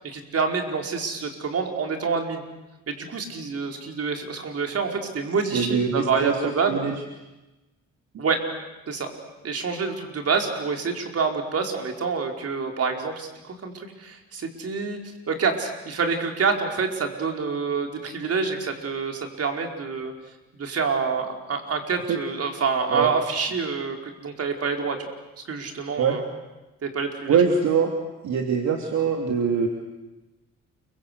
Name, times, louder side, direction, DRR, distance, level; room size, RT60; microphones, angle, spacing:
voice 1, 0.0-2.4 2.9-6.8 8.2-8.4 8.9-9.1 9.4-15.0 15.3-20.1 20.6-25.0 25.5-26.2 26.8-27.4, right 5 dB, 50° right, 4 dB, 4.8 m, -27 dB
voice 2, 5.5-6.9 22.1-22.2 22.9-23.1 26.0-26.2 27.3-27.9 28.2-29.7, right 6 dB, 70° right, 3 dB, 3.1 m, -23 dB
29.5 x 24.0 x 8.3 m, 1.0 s
cardioid pair, 90°, 30 cm